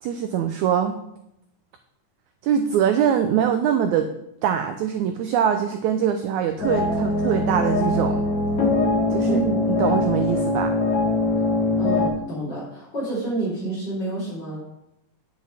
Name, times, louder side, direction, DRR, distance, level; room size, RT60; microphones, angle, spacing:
voice 1, 0.0-1.0 2.4-4.1 4.4-8.2 9.1-9.4 9.8-10.7, right 8 dB, 85° right, 7 dB, 1.7 m, -23 dB
sound 1, 6.6-12.1, left 2 dB, 50° left, 2.8 m, -22 dB
voice 2, 9.2-10.0 11.8-14.6, right 2 dB, 30° left, -6 dB, 4.0 m, -29 dB
9.4 x 7.9 x 4.2 m, 0.80 s
omnidirectional pair, 4.0 m